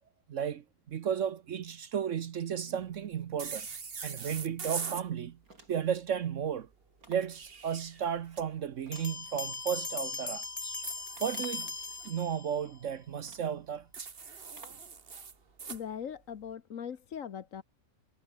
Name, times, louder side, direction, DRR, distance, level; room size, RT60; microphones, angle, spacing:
voice 1, 0.3-3.7 4.0-5.4 5.7-6.7 7.1-10.4 11.2-11.7 12.0-13.9, right 8 dB, 60° right, 1.1 m, -34 dB
sound 1, 3.4-5.1 7.1-8.4 10.6-12.1 13.9-15.8, right 5 dB, 40° right, 1.6 m, -42 dB
sound 2, 5.4-6.0 7.0-7.4 8.9-9.8 11.1-11.8 12.7-12.8 13.2-13.6 14.5-14.9, right 2 dB, 80° right, 6.0 m, -56 dB
sound 3, 8.9-12.7, left 3 dB, 25° left, 1.4 m, -39 dB
voice 2, 15.7-17.6, left 8 dB, 65° left, 1.5 m, -40 dB
omnidirectional pair, 1.5 m